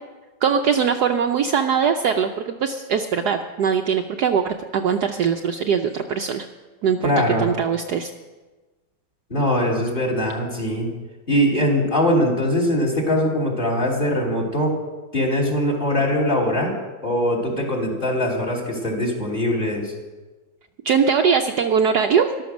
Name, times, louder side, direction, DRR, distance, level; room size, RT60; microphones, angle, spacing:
voice 1, 0.4-6.5 6.8-7.1 7.4-8.1 20.8-22.3, right 6 dB, 65° right, 5 dB, 1.1 m, -21 dB
voice 2, 7.0-7.5 9.3-10.9 11.3-14.8 15.1-16.8 17.0-19.9, left 1 dB, 25° left, 1 dB, 2.9 m, -21 dB
14.0 x 12.0 x 6.2 m, 1.2 s
omnidirectional pair, 2.1 m